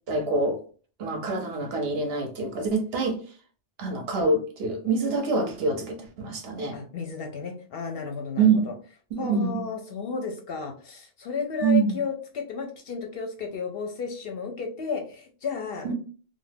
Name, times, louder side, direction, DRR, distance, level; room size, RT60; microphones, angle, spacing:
voice 1, 0.1-0.6 1.0-3.2 3.8-6.8 8.4-8.7 9.1-9.6 11.6-12.0 15.8-15.9, right 4 dB, 65° right, 0.7 m, -25 dB
voice 2, 6.7-8.7 9.2-15.9, left 5 dB, 65° left, 0.7 m, -33 dB
2.3 x 2.0 x 3.2 m
omnidirectional pair, 1.2 m